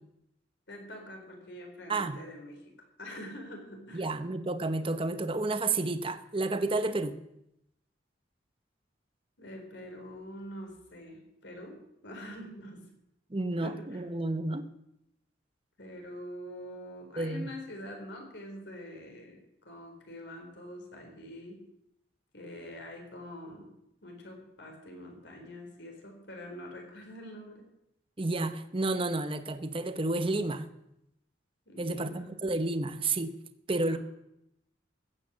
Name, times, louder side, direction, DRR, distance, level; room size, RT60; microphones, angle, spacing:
voice 1, 0.7-4.1 9.4-12.9 13.6-14.0 15.8-21.7 22.3-23.7 24.0-27.6 31.7-32.4 33.9-34.0, left 1 dB, 65° left, 2 dB, 4.2 m, -45 dB
voice 2, 3.9-7.2 13.3-14.7 17.2-17.5 28.2-30.7 31.8-33.3 33.7-34.0, right 2 dB, 30° right, 10 dB, 0.8 m, -31 dB
15.0 x 8.9 x 7.7 m, 0.82 s
head